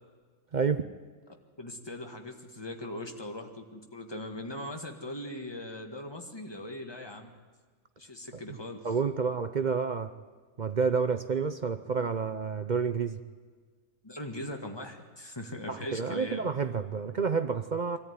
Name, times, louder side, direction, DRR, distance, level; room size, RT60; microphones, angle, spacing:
voice 1, 0.5-0.8 8.8-10.1 10.6-13.2 15.7-18.0, right 5 dB, 45° right, 10 dB, 0.6 m, -29 dB
voice 2, 1.6-7.3 8.0-8.9 14.0-16.5, left 1 dB, 15° left, 4 dB, 1.8 m, -40 dB
24.0 x 14.0 x 9.6 m, 1.5 s
omnidirectional pair, 1.6 m